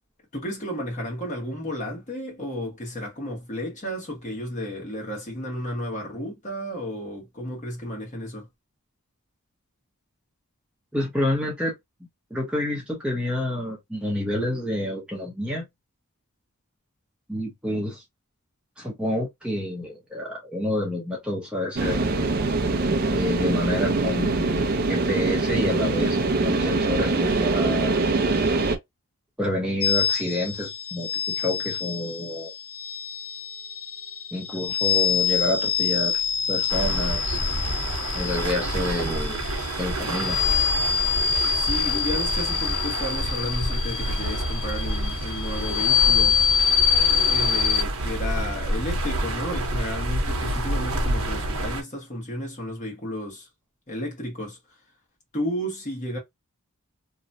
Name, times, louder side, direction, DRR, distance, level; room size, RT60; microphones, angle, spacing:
voice 1, 0.3-8.5 41.5-46.4 47.3-53.5 53.9-54.6 55.3-56.2, equal, 35° left, 1.2 m, -32 dB
voice 2, 10.9-11.7 12.3-15.7 17.3-18.0 18.8-22.0 23.1-28.0 29.4-32.5 34.3-36.2 36.5-37.4 38.1-39.4 39.8-40.4, left 1 dB, 5° right, 0.8 m, -28 dB
sound 1, 21.8-28.8, right 3 dB, 45° right, 0.5 m, -23 dB
sound 2, 29.8-47.8, left 7 dB, 90° left, 0.6 m, -25 dB
sound 3, 36.7-51.8, right 1 dB, 70° right, 0.9 m, -28 dB
2.9 x 2.2 x 2.6 m
head